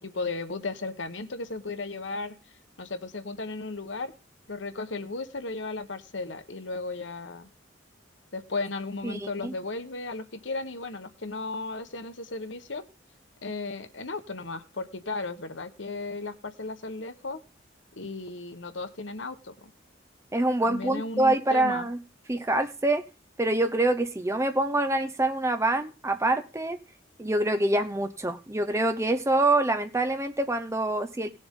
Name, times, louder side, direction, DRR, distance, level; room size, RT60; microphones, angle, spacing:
voice 1, 0.0-2.3 2.8-4.1 4.5-7.5 8.3-12.8 13.4-17.4 17.9-19.5 20.6-21.9, left 3 dB, 75° left, 9 dB, 1.2 m, -35 dB
voice 2, 9.0-9.5 20.3-22.0 22.3-23.0 23.4-26.8 27.2-31.3, right 2 dB, 15° right, 8 dB, 0.7 m, -25 dB
18.5 x 7.1 x 3.7 m, 0.30 s
head